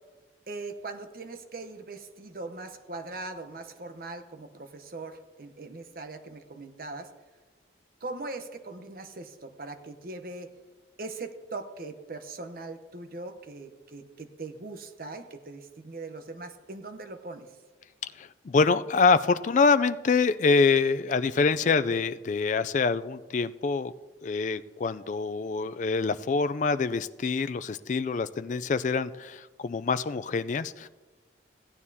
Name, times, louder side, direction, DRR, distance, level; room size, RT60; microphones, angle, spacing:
voice 1, 0.5-7.1 8.0-10.5 11.0-17.5, right 3 dB, 55° right, 8 dB, 0.9 m, -40 dB
voice 2, 18.0-23.9 24.2-30.9, left 4 dB, 45° left, 13 dB, 0.3 m, -25 dB
16.5 x 9.6 x 2.8 m, 1.3 s
head